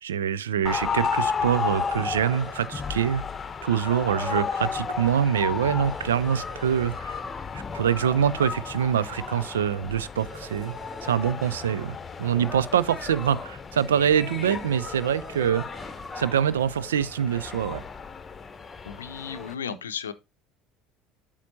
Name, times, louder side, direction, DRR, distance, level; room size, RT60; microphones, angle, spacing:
voice 1, 0.0-3.2 3.6-7.2 7.5-10.7 11.0-11.9 12.2-15.7 16.1-17.8, right 9 dB, 75° right, 0.4 m, -25 dB
sound 1, 0.7-19.6, left 6 dB, 25° left, 0.9 m, -33 dB
sound 2, 1.5-2.9 5.8-7.2 10.2-11.5 14.5-15.8, right 3 dB, 35° right, 1.4 m, -45 dB
voice 2, 18.9-20.1, left 7 dB, 80° left, 0.6 m, -34 dB
8.4 x 7.2 x 2.7 m
figure-of-eight pair, 65°, 0 cm